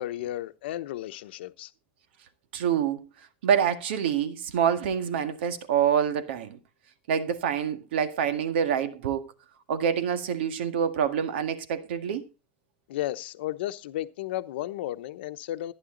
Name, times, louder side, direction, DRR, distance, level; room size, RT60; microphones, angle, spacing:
voice 1, 0.0-1.7 12.9-15.7, left 14 dB, 80° left, 0.9 m, -33 dB
voice 2, 2.5-3.0 3.4-6.6 7.1-9.3 9.7-12.3, right 8 dB, 90° right, 1.9 m, -26 dB
14.5 x 9.9 x 3.9 m
supercardioid pair, 180°, 6 cm